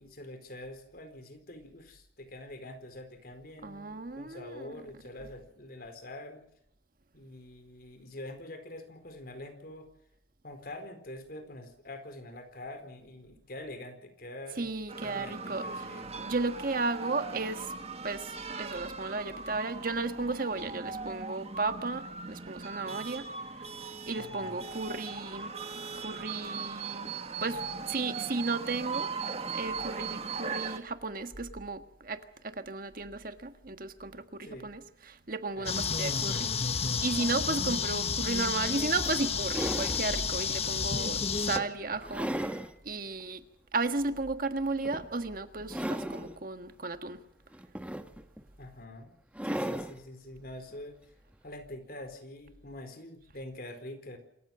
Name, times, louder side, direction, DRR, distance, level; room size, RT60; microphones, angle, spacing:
voice 1, 0.0-6.4 7.1-9.9 10.4-16.1 24.1-24.7 34.4-34.7 35.5-36.5 48.6-49.1 49.4-51.0 51.4-54.2, left 1 dB, 55° left, 4.4 m, -45 dB
voice 2, 3.6-4.7 14.6-15.6 16.2-17.7 18.0-18.3 18.6-23.2 24.1-25.5 26.0-27.1 27.4-27.6 27.9-29.1 29.5-34.8 35.1-36.4 37.0-42.6 42.8-43.4 43.7-47.2, right 3 dB, 55° right, 1.5 m, -34 dB
sound 1, 14.9-30.8, right 4 dB, 35° right, 1.7 m, -39 dB
sound 2, 35.7-41.6, left 6 dB, 35° left, 1.2 m, -31 dB
sound 3, 38.3-38.4 39.1-40.1 40.7-40.9 41.6-42.7 43.2-43.3 44.8-45.2 45.6-46.4 47.5-48.4 49.3-50.0 51.3-51.4, equal, 10° right, 1.2 m, -36 dB
27.0 x 14.5 x 7.7 m
head